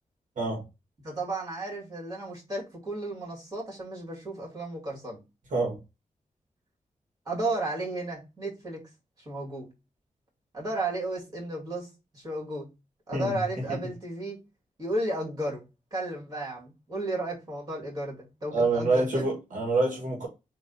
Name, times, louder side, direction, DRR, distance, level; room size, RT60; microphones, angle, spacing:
voice 1, 1.0-5.2 7.3-8.8 9.3-9.7 10.5-12.7 13.1-14.4 14.8-15.6 15.9-19.3, right 2 dB, 30° right, 2.4 m, -33 dB
voice 2, 13.1-13.6 18.5-20.3, right 3 dB, 75° right, 1.4 m, -27 dB
4.0 x 2.6 x 3.9 m
wide cardioid pair, 120°, 13 cm